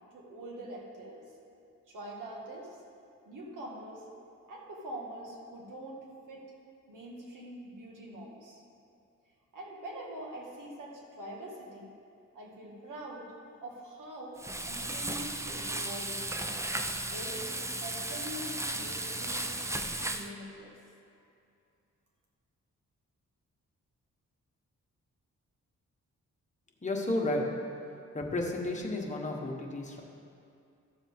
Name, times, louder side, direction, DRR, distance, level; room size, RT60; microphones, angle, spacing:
voice 1, 0.1-1.2 1.9-2.8 3.3-4.0 4.5-6.4 6.9-8.6 9.5-11.9 12.3-13.3 13.6-16.3 17.1-20.8, right 1 dB, 85° right, -2 dB, 1.7 m, -44 dB
Frying (food), 14.4-20.3, right 1 dB, 10° right, 0.5 m, -35 dB
voice 2, 26.8-27.5 28.1-30.0, left 2 dB, 25° left, -1 dB, 1.3 m, -32 dB
13.5 x 7.1 x 3.6 m, 2.5 s
cardioid pair, 90°, 31 cm